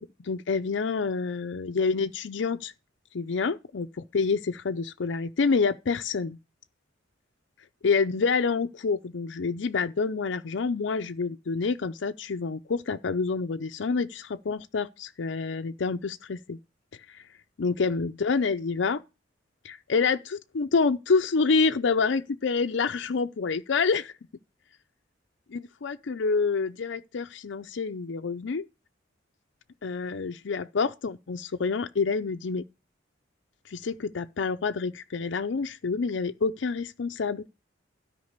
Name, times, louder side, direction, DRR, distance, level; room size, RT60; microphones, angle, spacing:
voice 1, 0.0-2.7 3.1-6.4 7.8-16.6 17.1-17.2 17.6-19.0 19.6-24.1 25.5-28.7 29.8-32.6 33.7-37.5, left 4 dB, 70° left, 0.5 m, -27 dB
12.5 x 5.2 x 6.5 m
head